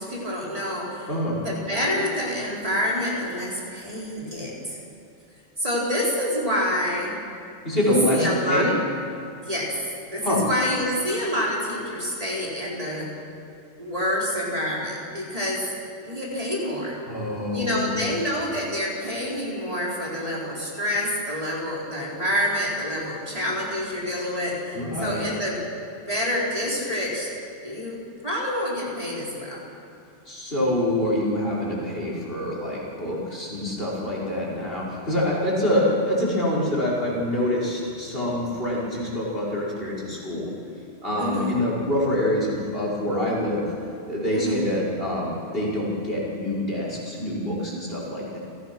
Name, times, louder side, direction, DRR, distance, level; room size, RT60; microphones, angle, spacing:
voice 1, 0.0-1.1 1.4-4.8 5.6-7.2 7.8-8.7 9.5-9.7 10.1-13.1 13.8-15.6 16.0-17.0 17.5-25.6 25.9-27.3 27.6-28.0 28.2-29.6 41.2-41.6 44.3-44.6, left 1 dB, 30° right, -5 dB, 4.5 m, -27 dB
voice 2, 1.1-1.4 7.6-8.7 10.2-10.4 17.1-18.1 24.7-25.2 30.3-40.5 41.0-43.7 44.1-48.4, left 1 dB, 50° left, -5 dB, 5.7 m, -26 dB
29.5 x 17.5 x 6.1 m, 2.6 s
omnidirectional pair, 1.2 m